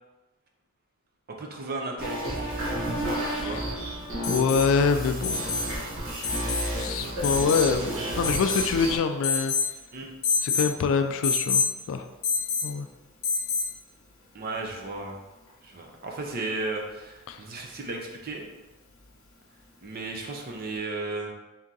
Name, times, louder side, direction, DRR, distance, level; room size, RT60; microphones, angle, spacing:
voice 1, 1.3-2.5 3.4-3.6 9.9-10.1 14.3-15.1 15.6-18.5 19.8-21.3, right 2 dB, 45° right, 1 dB, 0.6 m, -34 dB
sound 1, 2.0-9.0, right 1 dB, 65° right, 1.1 m, -31 dB
Alarm, 4.2-4.7 5.2-5.7 6.2-6.7 7.2-7.7 8.2-8.7 9.2-9.7 10.2-10.7 11.2-11.7 12.2-12.7 13.2-13.7 15.5-15.6, left 5 dB, 85° left, 0.9 m, -27 dB
voice 2, 4.3-5.5 6.8-9.5 10.4-12.1 12.6-12.9 17.3-17.4, left 5 dB, 65° left, 7 dB, 0.3 m, -25 dB
3.6 x 2.8 x 3.7 m, 1.1 s
head